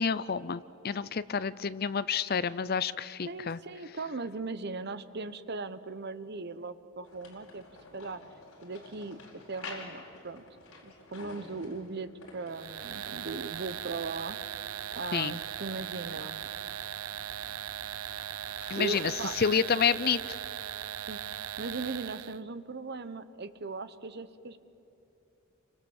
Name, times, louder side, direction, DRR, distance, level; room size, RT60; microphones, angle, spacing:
voice 1, 0.0-3.6 15.1-15.4 18.7-19.1 19.4-20.2, left 6 dB, 45° left, 17 dB, 0.5 m, -29 dB
voice 2, 3.3-7.6 7.9-8.2 8.6-9.2 9.5-10.4 10.8-14.4 14.9-16.5 18.7-19.3 21.1-24.6, right 3 dB, 50° right, 13 dB, 1.0 m, -38 dB
sound 1, 7.0-19.2, left 3 dB, 85° left, 4.6 m, -51 dB
sound 2, 12.5-22.4, right 10 dB, 90° right, 0.6 m, -39 dB
29.5 x 25.0 x 7.2 m, 2.8 s
head